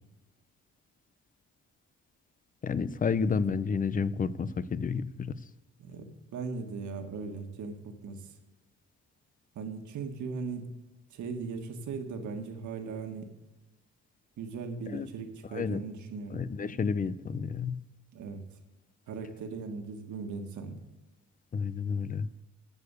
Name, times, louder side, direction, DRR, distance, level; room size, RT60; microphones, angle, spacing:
voice 1, 2.6-5.3 14.9-15.1 15.5-15.8 16.3-17.8 21.5-22.3, left 5 dB, 30° left, 17 dB, 0.5 m, -30 dB
voice 2, 5.8-7.8 8.0-8.3 9.5-10.7 11.1-13.3 14.4-16.4 18.1-18.4 19.1-20.8, right 4 dB, 75° right, 5 dB, 1.7 m, -38 dB
13.0 x 4.8 x 8.2 m, 1.1 s
cardioid pair, 90°, 30 cm